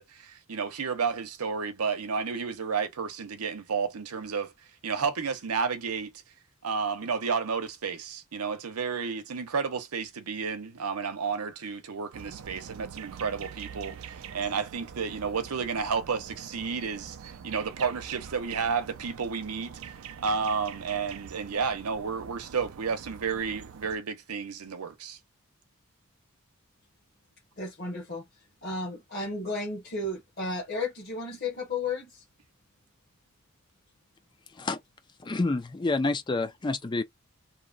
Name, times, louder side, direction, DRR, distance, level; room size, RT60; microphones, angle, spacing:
voice 1, 0.0-4.5 4.8-6.1 6.6-19.7 20.2-25.2, right 5 dB, 90° right, 0.7 m, -31 dB
sound 1, 12.1-24.0, right 7 dB, 65° right, 0.4 m, -44 dB
voice 2, 27.6-28.3 28.6-32.2, left 3 dB, 45° left, 1.0 m, -33 dB
voice 3, 35.2-37.0, left 3 dB, 20° left, 0.3 m, -28 dB
2.8 x 2.1 x 2.4 m
head